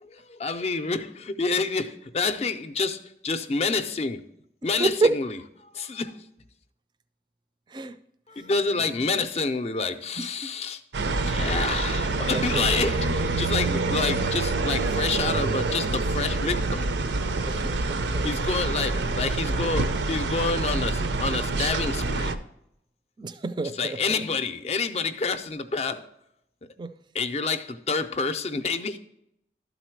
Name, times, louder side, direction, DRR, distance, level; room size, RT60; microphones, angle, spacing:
voice 1, 0.0-4.2 4.6-5.4 5.7-6.2 8.4-10.8 11.2-16.8 18.2-22.4 23.7-26.0 27.1-29.0, left 4 dB, 35° left, 0.4 m, -28 dB
voice 2, 4.8-5.1 7.7-8.0 10.2-10.5 12.2-12.6 17.4-18.3 23.2-24.0 26.8-26.9, right 3 dB, 25° right, 0.4 m, -29 dB
sound 1, 10.9-22.4, right 3 dB, 80° right, 0.5 m, -26 dB
12.0 x 4.1 x 4.5 m
head